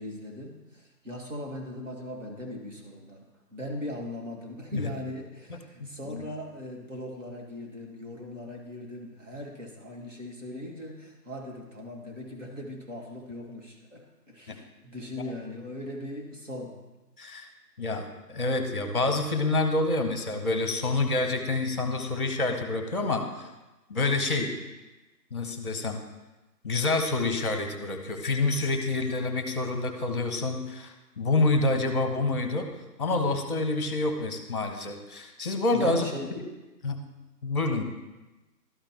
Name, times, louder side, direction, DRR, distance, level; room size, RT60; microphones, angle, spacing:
voice 1, 0.0-3.3 3.5-16.8 35.7-36.3, left 1 dB, 50° right, 1 dB, 1.8 m, -39 dB
voice 2, 5.8-6.2 14.5-14.6 17.2-17.5 17.8-23.5 23.9-24.5 25.3-26.0 26.6-32.7 33.0-36.0 36.3-36.4 36.8-37.0 37.4-37.8, left 2 dB, 35° left, 6 dB, 0.8 m, -27 dB
12.5 x 5.0 x 2.9 m, 1.1 s
figure-of-eight pair, 170°, 50 cm